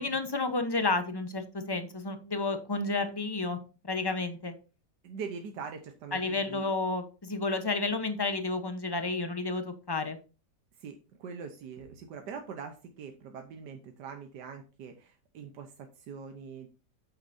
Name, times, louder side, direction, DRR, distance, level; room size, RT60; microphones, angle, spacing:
voice 1, 0.0-3.6 3.8-4.5 6.1-10.2, left 3 dB, 20° left, 8 dB, 0.8 m, -31 dB
voice 2, 5.0-6.7 10.8-16.7, right 6 dB, 90° right, 4 dB, 1.6 m, -43 dB
8.8 x 8.7 x 2.7 m, 0.32 s
omnidirectional pair, 1.8 m